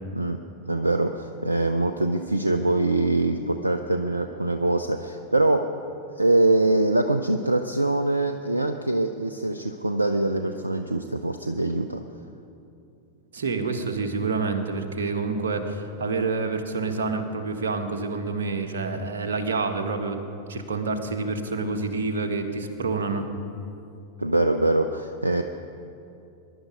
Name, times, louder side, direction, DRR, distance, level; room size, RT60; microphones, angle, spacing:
voice 1, 0.6-5.7 6.2-12.0 24.2-25.4, right 2 dB, 85° right, 7 dB, 0.5 m, -23 dB
voice 2, 13.3-23.3, right 4 dB, 65° right, 5 dB, 1.5 m, -28 dB
21.5 x 11.5 x 5.1 m, 2.6 s
figure-of-eight pair, 90°, 0 cm